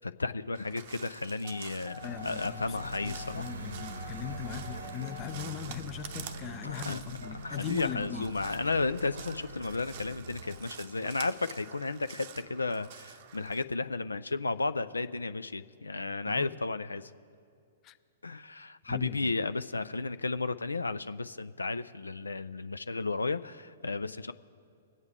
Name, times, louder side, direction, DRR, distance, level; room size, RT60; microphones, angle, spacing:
voice 1, 0.0-3.5 6.6-7.0 7.4-17.1 18.2-24.3, left 3 dB, 85° left, 12 dB, 0.3 m, -33 dB
Crow, 0.6-13.6, right 9 dB, 50° right, 0.7 m, -49 dB
sound 1, 1.4-5.4, left 5 dB, 55° left, 1.6 m, -49 dB
voice 2, 2.0-2.7 3.0-8.3 16.2-16.6 17.8-18.0 18.9-19.3, left 10 dB, 30° left, 13 dB, 0.5 m, -39 dB
sound 2, 2.0-10.6, right 2 dB, 80° right, 1.0 m, -43 dB
21.5 x 8.0 x 3.6 m, 2.4 s
figure-of-eight pair, 115°, 0 cm